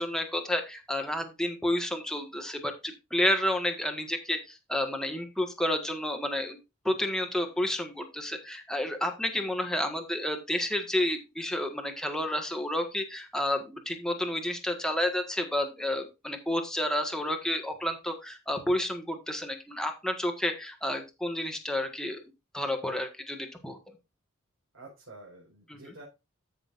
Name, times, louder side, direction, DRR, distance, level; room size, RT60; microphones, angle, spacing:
voice 1, 0.0-6.6 6.8-22.2 22.5-23.8 25.7-25.9, left 1 dB, 5° left, 4 dB, 1.6 m, -30 dB
voice 2, 24.7-26.0, right 2 dB, 65° right, -4 dB, 4.6 m, -49 dB
14.0 x 6.1 x 2.6 m, 0.26 s
head